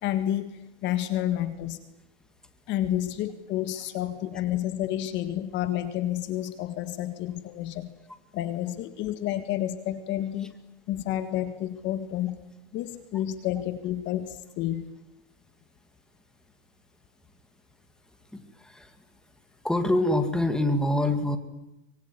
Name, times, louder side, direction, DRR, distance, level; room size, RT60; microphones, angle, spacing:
voice 1, 0.0-1.8 2.7-7.9 8.3-10.5 10.9-12.4 12.7-14.9, left 12 dB, 30° left, 11 dB, 1.7 m, -30 dB
voice 2, 18.3-18.9 19.6-21.4, left 1 dB, ahead, 7 dB, 2.2 m, -25 dB
24.5 x 23.0 x 9.7 m, 0.91 s
supercardioid pair, 145°, 35 cm